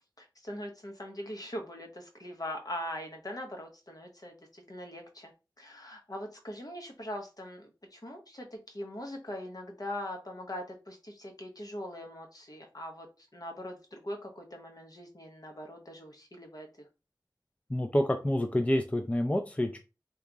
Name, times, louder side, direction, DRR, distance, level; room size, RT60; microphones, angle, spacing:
voice 1, 0.2-5.3 5.6-16.9, left 1 dB, 50° left, 3 dB, 0.8 m, -41 dB
voice 2, 17.7-19.8, left 1 dB, 15° left, 5 dB, 0.4 m, -28 dB
2.8 x 2.3 x 3.8 m, 0.30 s
wide cardioid pair, 45°, 8 cm